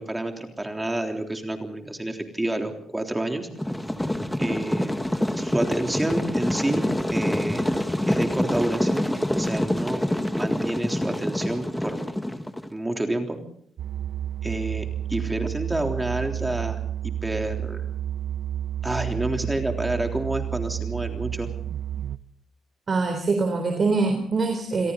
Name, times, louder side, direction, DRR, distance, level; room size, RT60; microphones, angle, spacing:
voice 1, 0.0-3.5 4.4-5.0 5.3-6.8 7.1-7.6 8.1-9.1 9.4-10.0 10.3-12.1 12.7-13.4 14.4-17.8 18.8-21.5, right 1 dB, 10° right, 4 dB, 3.5 m, -29 dB
sound 1, 3.6-12.7, left 1 dB, 5° left, 1.8 m, -26 dB
sound 2, 13.8-22.2, right 10 dB, 65° right, 0.9 m, -31 dB
voice 2, 22.9-24.9, right 3 dB, 40° right, 5 dB, 3.7 m, -23 dB
29.5 x 22.5 x 4.1 m, 0.62 s
cardioid pair, 90°, 0 cm